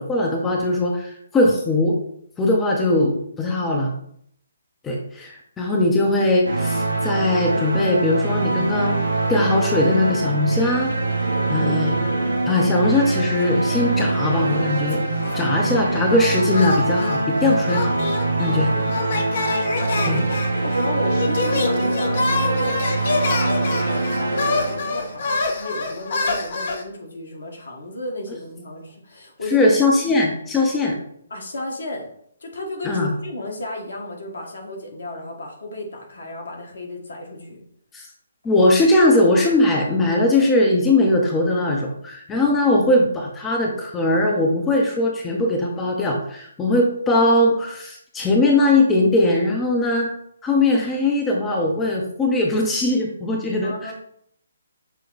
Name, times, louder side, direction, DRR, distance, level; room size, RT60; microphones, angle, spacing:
voice 1, 0.0-1.9 2.4-3.9 4.8-9.0 9.3-10.9 11.5-12.0 12.5-15.0 15.3-17.9 18.4-18.7 20.1-20.2 29.5-31.0 32.8-33.1 37.9-38.1 38.4-50.1 50.4-53.9, left 2 dB, 10° left, -1 dB, 0.6 m, -20 dB
sound 1, 6.4-25.4, right 2 dB, 75° right, 1.2 m, -23 dB
voice 2, 11.2-11.8 18.4-19.3 19.6-29.8 31.3-32.1 32.4-37.6 53.6-53.9, left 1 dB, 65° left, 0 dB, 1.3 m, -33 dB
sound 2, 13.4-14.2 14.5-15.8 16.5-26.8, left 3 dB, 50° left, 0.7 m, -27 dB
6.2 x 2.2 x 3.9 m, 0.68 s
figure-of-eight pair, 135°, 0 cm